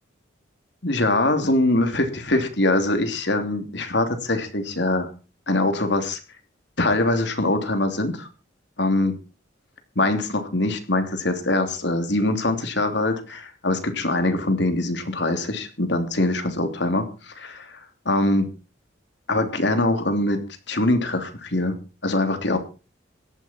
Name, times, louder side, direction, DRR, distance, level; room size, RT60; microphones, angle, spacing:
voice 1, 0.8-5.1 5.5-6.2 6.8-8.3 8.8-9.1 9.9-18.5 19.3-20.4 20.7-21.8 22.0-22.6, left 2 dB, 65° left, 6 dB, 3.0 m, -23 dB
17.0 x 13.0 x 4.5 m, 0.34 s
head